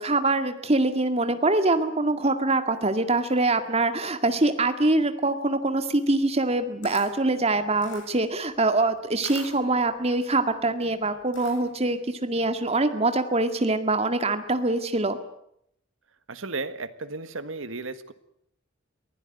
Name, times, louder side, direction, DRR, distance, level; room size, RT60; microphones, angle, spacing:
voice 1, 0.0-15.2, right 2 dB, 30° right, 8 dB, 2.0 m, -24 dB
Camera, 6.4-11.9, left 4 dB, 70° left, 7.8 m, -46 dB
voice 2, 16.3-18.1, right 3 dB, 85° right, 12 dB, 1.7 m, -34 dB
23.0 x 16.0 x 9.2 m, 0.73 s
head